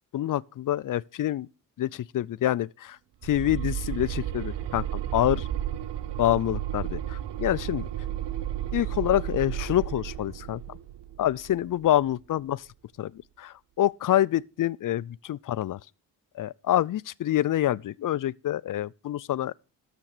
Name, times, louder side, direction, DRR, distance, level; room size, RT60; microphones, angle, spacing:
voice 1, 0.1-1.5 1.8-3.0 3.2-5.5 6.2-7.8 8.7-10.6 11.2-12.6 13.0-13.1 13.4-15.8 16.4-19.6, left 12 dB, 45° left, 0.5 m, -26 dB
sound 1, 3.2-12.1, right 12 dB, 65° right, 0.9 m, -33 dB
13.0 x 6.8 x 4.9 m
supercardioid pair, 40°, 45 cm